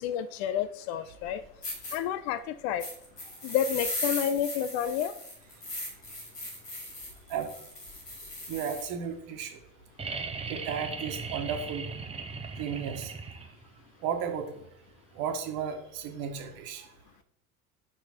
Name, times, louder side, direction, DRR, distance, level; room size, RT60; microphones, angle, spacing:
voice 1, 0.0-1.4 1.9-2.9 3.4-5.1, left 9 dB, 45° left, 14 dB, 0.5 m, -30 dB
sound 1, 1.2-1.3 1.6-2.0 2.8-8.9, left 1 dB, 85° left, 2.3 m, -38 dB
voice 2, 8.5-9.6 10.5-11.9 12.6-13.1 14.0-14.6 15.1-16.9, right 7 dB, 50° right, 5 dB, 1.4 m, -34 dB
sound 2, 10.0-13.8 15.5-15.6, right 4 dB, 15° right, 0.7 m, -38 dB
6.2 x 5.7 x 4.3 m, 0.81 s
figure-of-eight pair, 70°, 46 cm